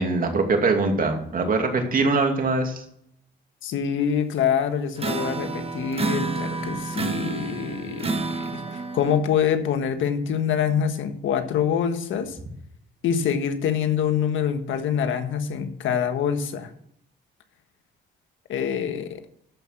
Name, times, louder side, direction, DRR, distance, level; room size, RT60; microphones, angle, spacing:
voice 1, 0.0-2.8, right 3 dB, 45° right, 4 dB, 2.6 m, -22 dB
voice 2, 3.6-12.4 13.0-16.7 18.5-19.2, left 8 dB, 75° left, 7 dB, 1.5 m, -25 dB
sound 1, 5.0-9.2, right 4 dB, 30° right, 1.2 m, -29 dB
13.0 x 5.7 x 6.0 m, 0.71 s
cardioid pair, 90°, 20 cm